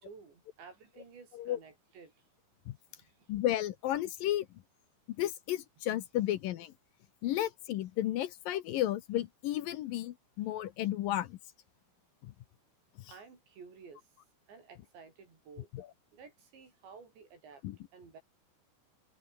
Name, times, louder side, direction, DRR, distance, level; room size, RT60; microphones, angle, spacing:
voice 1, 0.0-2.1 2.9-3.3 13.1-14.0 14.5-15.7 16.1-17.6 17.9-18.2, right 5 dB, 80° right, 8.6 m, -53 dB
voice 2, 3.3-4.5 5.2-6.7 7.2-11.4 12.2-12.3 13.0-13.1 15.7-15.9 17.6-17.8, left 13 dB, 70° left, 2.2 m, -33 dB
omnidirectional pair, 5.0 m